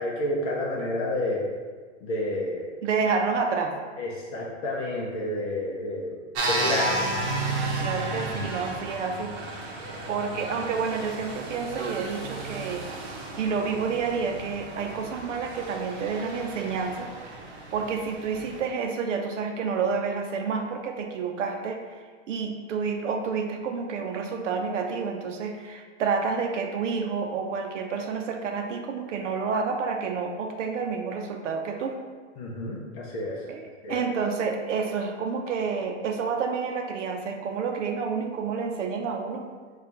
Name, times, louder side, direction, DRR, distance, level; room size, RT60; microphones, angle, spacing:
voice 1, 0.0-1.5 2.0-2.6 4.0-6.1 6.5-7.0 32.4-33.4 33.8-34.0, left 1 dB, 30° left, -3 dB, 0.5 m, -29 dB
voice 2, 2.8-3.8 7.8-9.7 10.1-12.9 13.4-17.1 17.7-22.0 22.3-32.0 33.5-39.5, right 5 dB, 80° right, 4 dB, 0.6 m, -29 dB
sound 1, 6.3-18.6, right 2 dB, 60° right, 0.9 m, -33 dB
4.2 x 2.4 x 3.8 m, 1.5 s
hypercardioid pair, 150°, 37 cm